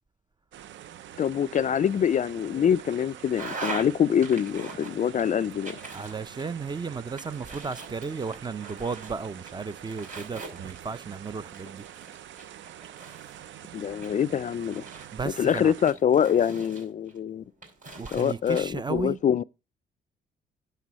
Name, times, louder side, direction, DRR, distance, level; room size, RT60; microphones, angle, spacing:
sound 1, 0.5-15.9, right 11 dB, 70° right, 0.6 m, -45 dB
voice 1, 1.2-5.8 13.7-14.8 15.4-17.4 18.1-19.4, left 8 dB, 40° left, 0.4 m, -25 dB
sound 2, 3.4-3.9 4.2-5.2 5.6-6.7 7.2-9.1 9.5-11.0 11.5-13.4 14.0-15.2 15.9-17.2 17.6-18.6, right 3 dB, 40° right, 5.7 m, -41 dB
voice 2, 5.9-11.8 15.1-15.7 18.0-19.2, right 5 dB, 20° right, 0.5 m, -34 dB
11.0 x 6.8 x 4.1 m
cardioid pair, 90°, 20 cm